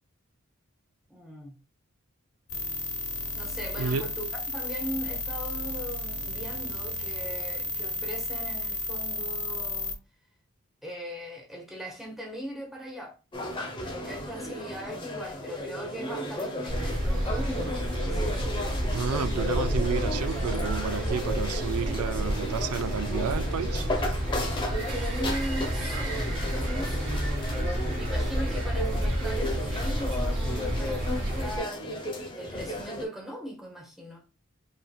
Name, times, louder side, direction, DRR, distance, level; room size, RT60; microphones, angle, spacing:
voice 1, 1.1-1.6 3.3-10.0 10.8-13.2 13.8-18.4 25.0-26.2 26.6-27.1 28.0-34.2, equal, ahead, 1.0 m, -39 dB
sound 1, 2.5-9.9, left 2 dB, 80° left, 0.9 m, -33 dB
sound 2, 13.3-33.1, left 1 dB, 20° left, 0.9 m, -34 dB
sound 3, 16.7-31.6, equal, 60° right, 1.8 m, -30 dB
voice 2, 18.9-23.9, right 6 dB, 90° right, 0.4 m, -31 dB
5.3 x 3.4 x 2.3 m
head